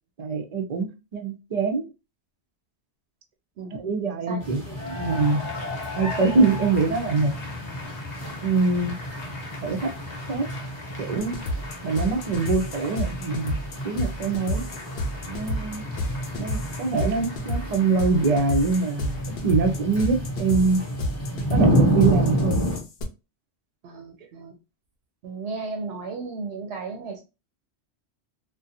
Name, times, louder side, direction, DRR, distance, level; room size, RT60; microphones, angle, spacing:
voice 1, 0.2-1.9 3.7-5.4 6.0-7.3 8.4-9.0 9.6-9.9 10.3-10.5 11.0-11.3 11.8-13.6 13.8-14.6 15.3-15.8 16.4-20.8 21.5-22.6, right 4 dB, 50° right, 0.5 m, -24 dB
sound 1, 4.4-22.8, equal, 15° left, 0.8 m, -30 dB
Cheering / Applause, 4.7-19.6, left 2 dB, 50° left, 0.6 m, -40 dB
sound 2, 11.2-23.0, left 1 dB, 75° left, 0.8 m, -31 dB
voice 2, 23.8-24.6 25.2-27.2, right 4 dB, 75° right, 0.8 m, -34 dB
2.4 x 2.2 x 2.7 m
omnidirectional pair, 1.2 m